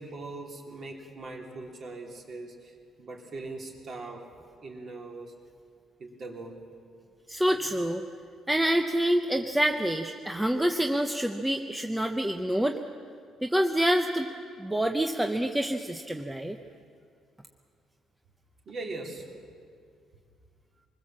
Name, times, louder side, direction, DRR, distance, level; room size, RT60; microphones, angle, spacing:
voice 1, 0.0-4.2 4.6-5.3 6.0-6.6 18.7-19.2, right 3 dB, 40° right, 0 dB, 3.2 m, -40 dB
voice 2, 7.3-8.0 8.5-12.8 13.4-14.3 14.6-16.6, right 1 dB, 5° right, 4 dB, 0.7 m, -27 dB
25.5 x 21.0 x 7.5 m, 2.2 s
cardioid pair, 160°, 0 cm